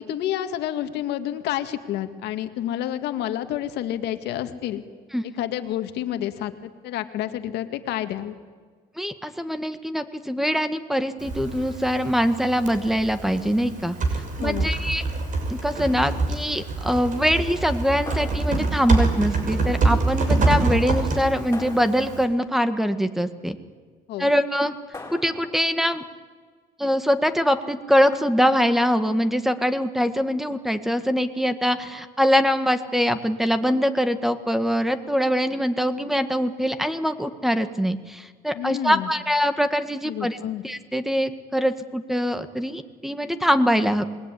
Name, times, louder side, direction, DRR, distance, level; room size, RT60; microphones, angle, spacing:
voice 1, 0.0-4.8 5.4-8.4 14.4-14.7 24.1-24.3 38.5-39.1 40.1-40.6, left 12 dB, 85° left, 8 dB, 2.0 m, -29 dB
voice 2, 9.0-15.0 15.5-23.6 24.2-24.7 25.1-26.0 26.8-40.4 40.6-44.0, equal, ahead, 10 dB, 1.8 m, -23 dB
Typing, 11.2-22.2, right 3 dB, 50° right, 6.5 m, -26 dB
sound 1, 18.1-19.1 21.5-22.5 24.9-25.8, left 2 dB, 15° left, 4.5 m, -41 dB
27.0 x 20.5 x 10.0 m, 1.5 s
cardioid pair, 110°, 17 cm